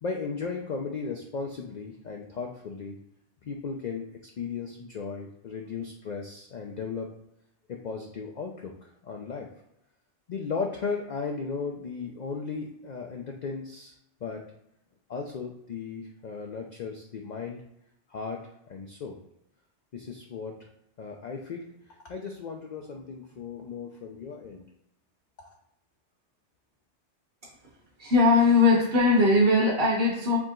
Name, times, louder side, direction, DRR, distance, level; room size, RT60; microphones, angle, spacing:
voice 1, 0.0-3.0 3.5-4.1 4.4-7.1 7.7-8.7 9.0-9.5 10.3-13.9 14.2-14.4 15.1-17.6 18.1-18.4 18.7-19.2 19.9-20.7 21.0-21.7 22.1-24.6 25.4-25.5, left 5 dB, 55° left, 1 dB, 0.5 m, -36 dB
voice 2, 28.0-30.4, left 3 dB, 55° right, -4 dB, 1.3 m, -20 dB
4.7 x 2.9 x 3.7 m, 0.80 s
omnidirectional pair, 1.2 m